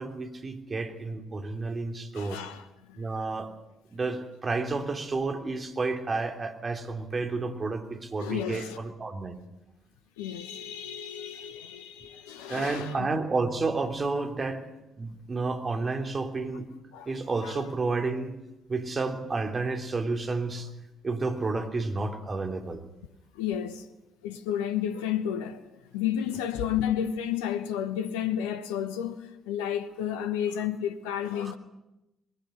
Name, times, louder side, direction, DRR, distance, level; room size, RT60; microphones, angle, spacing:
voice 1, 0.0-2.4 3.0-3.5 3.9-9.4 12.5-14.7 15.0-16.7 17.1-18.3 18.7-20.7 21.0-22.8, right 3 dB, 35° right, 3.3 m, -31 dB
voice 2, 2.1-3.0 8.2-8.8 10.2-13.1 16.9-17.1 17.4-17.5 23.3-23.9 24.2-25.6 25.9-31.5, left 9 dB, 75° left, 1.0 m, -32 dB
21.0 x 17.0 x 9.9 m
figure-of-eight pair, 45°, 0 cm